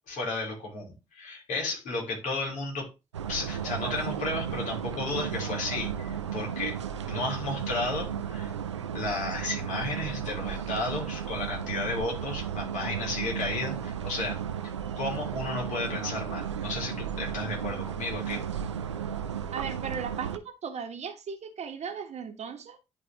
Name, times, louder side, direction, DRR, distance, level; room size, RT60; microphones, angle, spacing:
voice 1, 0.1-2.9 3.3-6.8 7.0-8.5 8.9-14.4 15.0-18.4, left 2 dB, 60° left, 3.7 m, -33 dB
sound 1, 3.1-20.4, right 8 dB, 90° right, 0.4 m, -34 dB
voice 2, 19.5-22.8, right 6 dB, 50° right, 1.5 m, -37 dB
10.5 x 4.1 x 3.6 m
figure-of-eight pair, 40°, 14 cm